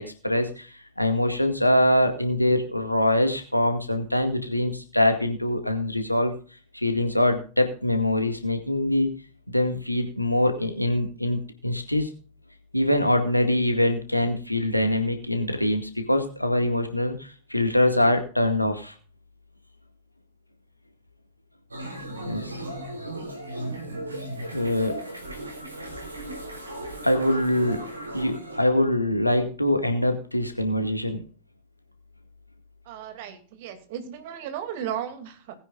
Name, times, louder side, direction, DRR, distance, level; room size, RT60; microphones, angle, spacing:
voice 1, 0.0-6.3 6.7-9.1 9.5-12.1 12.7-18.9 22.2-22.6 24.5-25.0 27.0-27.8 28.1-31.2, left 1 dB, 90° left, 6 dB, 2.0 m, -24 dB
sound 1, 21.7-28.6, right 1 dB, 80° right, 3.5 m, -36 dB
voice 2, 32.9-35.5, right 9 dB, 50° right, 7 dB, 2.6 m, -35 dB
19.5 x 9.8 x 2.5 m, 0.38 s
figure-of-eight pair, 90°, 0 cm